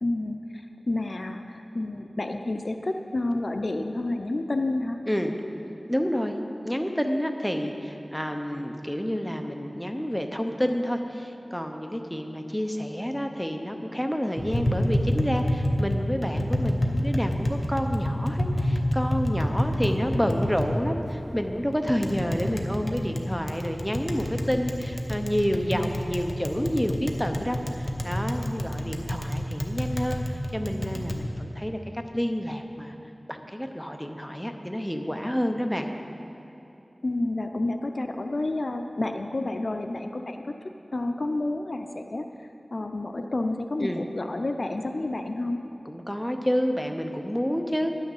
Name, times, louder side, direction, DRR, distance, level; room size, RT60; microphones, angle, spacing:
voice 1, 0.0-5.0 37.0-40.4 40.9-42.2 42.7-45.6, left 2 dB, 65° left, 6 dB, 0.5 m, -29 dB
voice 2, 5.9-6.4 6.6-30.2 30.5-32.9 33.3-35.9 43.8-44.0 45.9-47.9, equal, 5° left, 4 dB, 0.7 m, -29 dB
Tap, 14.4-31.2, equal, 40° left, 0.9 m, -28 dB
10.5 x 6.4 x 7.1 m, 2.9 s
wide cardioid pair, 60°, 0 cm